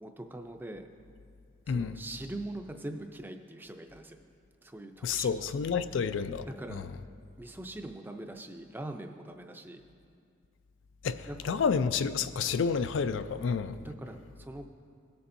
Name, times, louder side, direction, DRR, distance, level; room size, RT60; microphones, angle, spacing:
voice 1, 0.0-0.9 1.7-4.2 4.6-5.5 6.5-6.9 7.4-9.8 11.3-11.5 13.8-14.7, right 1 dB, 10° right, 5 dB, 0.4 m, -42 dB
voice 2, 1.7-2.0 5.0-6.9 11.0-13.8, left 6 dB, 75° left, 12 dB, 0.3 m, -30 dB
19.5 x 6.9 x 2.6 m, 2.3 s
head